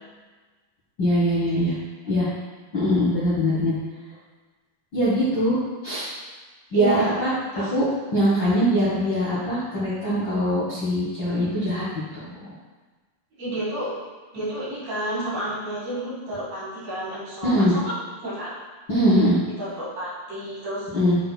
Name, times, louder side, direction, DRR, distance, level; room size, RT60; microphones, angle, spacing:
voice 1, 1.0-1.7 2.1-2.3 2.7-3.7 4.9-5.6 5.8-6.1 6.7-7.3 7.7-7.9 8.1-11.8 12.1-12.5 17.4-17.7 18.9-19.4 20.9-21.2, equal, 85° left, -10 dB, 1.0 m, -22 dB
voice 2, 6.7-7.1 7.5-7.7 13.4-14.0 14.3-17.9 18.2-18.5 19.6-20.9, right 1 dB, 50° right, -9 dB, 2.8 m, -30 dB
9.9 x 4.1 x 2.3 m, 1.3 s
omnidirectional pair, 4.6 m